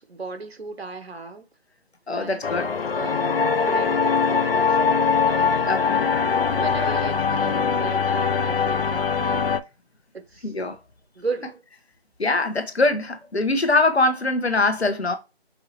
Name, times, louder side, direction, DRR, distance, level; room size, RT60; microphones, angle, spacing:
voice 1, 0.0-1.5 2.1-2.7 3.0-3.2 3.6-6.1 6.5-9.4 10.1-10.5 11.1-11.6, right 4 dB, 75° right, 1.0 m, -35 dB
voice 2, 2.1-2.7 5.7-6.0 10.4-10.8 12.2-15.1, left 2 dB, 85° left, 1.1 m, -22 dB
sound 1, 2.4-9.6, left 5 dB, 65° left, 0.6 m, -22 dB
5.6 x 2.7 x 2.9 m
figure-of-eight pair, 155°, 31 cm